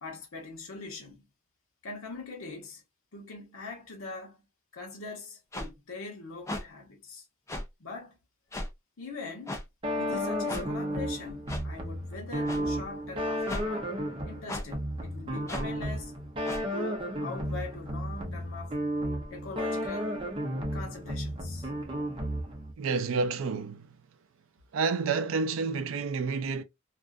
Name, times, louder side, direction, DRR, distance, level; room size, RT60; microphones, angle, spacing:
voice 1, 0.0-1.2 1.8-2.8 3.1-4.4 4.7-7.2 7.8-8.2 9.0-9.6 10.0-14.0 14.2-16.1 16.7-18.8 19.3-20.1 20.7-21.7, left 3 dB, 90° left, 0.9 m, -42 dB
sound 1, 5.5-5.7 6.5-6.6 7.5-7.7 8.5-8.7 9.5-9.6 10.5-10.6 11.5-11.7 12.5-12.6 13.5-13.7 14.5-14.7 15.5-15.7 16.4-16.6, left 1 dB, 15° left, 0.5 m, -35 dB
sound 2, 9.8-22.7, equal, 25° right, 0.6 m, -33 dB
voice 2, 22.8-23.9 24.7-26.6, right 4 dB, 75° right, 0.4 m, -29 dB
2.5 x 2.4 x 2.3 m
head